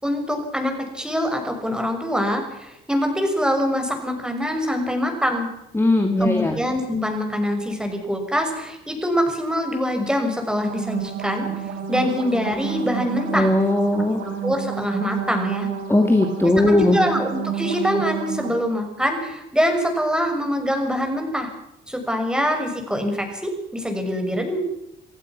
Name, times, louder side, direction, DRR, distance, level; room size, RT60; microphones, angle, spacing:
voice 1, 0.0-5.5 6.2-11.5 11.9-13.5 14.2-15.7 16.7-21.5 21.9-24.6, equal, 5° right, 4 dB, 6.2 m, -24 dB
voice 2, 5.7-6.6 13.3-14.2 15.9-17.0, left 1 dB, 10° left, 5 dB, 2.5 m, -18 dB
sound 1, 10.6-18.5, right 8 dB, 85° right, 4.2 m, -30 dB
27.5 x 16.5 x 6.0 m, 0.83 s
cardioid pair, 90°, 20 cm